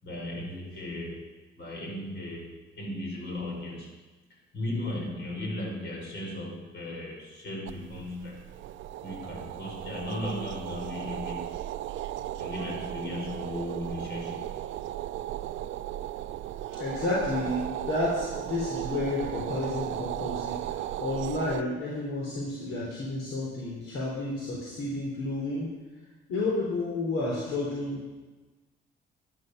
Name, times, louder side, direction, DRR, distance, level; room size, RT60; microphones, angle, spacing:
voice 1, 0.0-1.2 1.6-3.9 4.5-8.4 9.0-11.5 12.4-14.5, left 1 dB, 65° left, -1 dB, 5.7 m, -36 dB
sound 1, 7.7-21.6, right 13 dB, 75° right, 0.5 m, -36 dB
voice 2, 16.8-25.7 26.3-28.0, left 2 dB, 80° left, -4 dB, 3.5 m, -31 dB
12.5 x 11.5 x 6.6 m, 1.2 s
cardioid pair, 90°, 20 cm